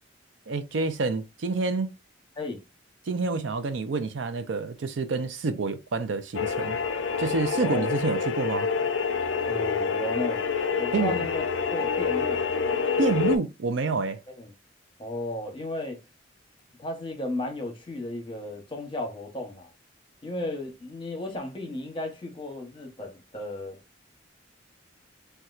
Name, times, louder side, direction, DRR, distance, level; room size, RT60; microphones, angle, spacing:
voice 1, 0.5-1.9 3.1-6.8 7.2-8.7 10.9-11.1 13.0-14.2, right 4 dB, 75° right, 0.5 m, -28 dB
sound 1, 6.3-13.4, left 5 dB, 80° left, 0.4 m, -27 dB
voice 2, 7.6-7.9 9.5-10.4 10.8-11.4 11.7-12.4 14.3-14.5 15.0-16.0 16.8-19.7 20.2-23.8, left 1 dB, 25° left, 0.8 m, -34 dB
4.1 x 2.3 x 2.4 m
head